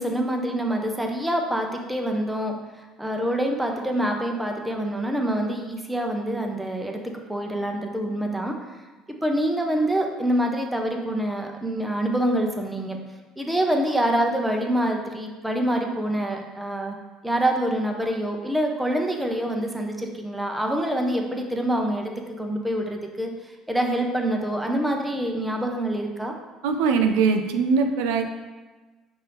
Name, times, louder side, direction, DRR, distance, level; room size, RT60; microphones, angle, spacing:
voice 1, 0.0-8.5 9.2-13.0 13.4-17.0 17.2-26.3, right 1 dB, 5° right, 2 dB, 0.6 m, -26 dB
voice 2, 26.6-28.3, right 5 dB, 85° right, 6 dB, 0.3 m, -21 dB
5.3 x 2.6 x 3.4 m, 1.3 s
supercardioid pair, 85°, 0 cm